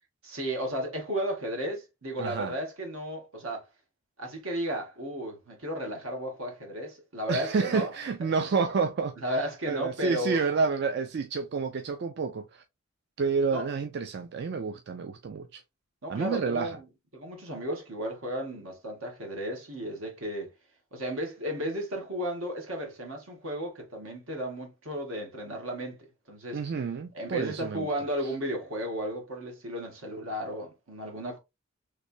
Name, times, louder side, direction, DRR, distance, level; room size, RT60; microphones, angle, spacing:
voice 1, 0.2-3.7 4.2-7.9 9.2-10.4 13.5-13.7 16.0-16.8 17.1-20.5 20.9-26.0 26.3-26.6 27.1-31.4, equal, 80° right, 1.4 m, -34 dB
voice 2, 2.2-2.5 7.3-12.6 13.2-15.6 16.1-16.8 26.5-27.9 28.2-28.3, right 5 dB, 55° right, 0.4 m, -29 dB
3.2 x 3.2 x 2.6 m
head